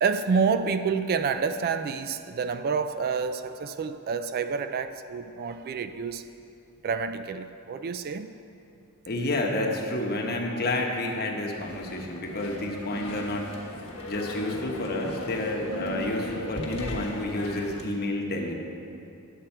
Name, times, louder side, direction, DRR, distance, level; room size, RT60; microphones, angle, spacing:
voice 1, 0.0-6.2 6.8-8.3, right 5 dB, 45° right, 10 dB, 0.3 m, -28 dB
voice 2, 9.1-13.5 14.1-18.6, left 1 dB, 45° left, 1 dB, 1.0 m, -29 dB
sound 1, 11.5-17.8, left 1 dB, 70° left, 1.4 m, -38 dB
10.5 x 7.6 x 4.4 m, 2.7 s
head